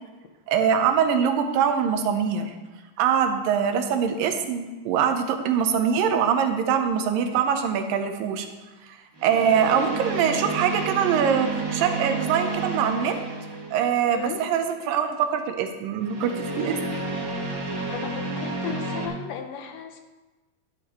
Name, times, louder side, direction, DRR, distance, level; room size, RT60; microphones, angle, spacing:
voice 1, 0.5-2.5 3.0-8.5 9.2-13.2 13.7-16.8, right 7 dB, 90° right, 6 dB, 2.6 m, -23 dB
sound 1, 7.2-7.5 9.1-14.2 16.0-19.1, right 3 dB, 55° right, 3.6 m, -31 dB
voice 2, 14.1-14.4 17.9-20.0, left 7 dB, 80° left, 6 dB, 2.5 m, -35 dB
11.5 x 10.0 x 3.1 m, 1.2 s
omnidirectional pair, 3.9 m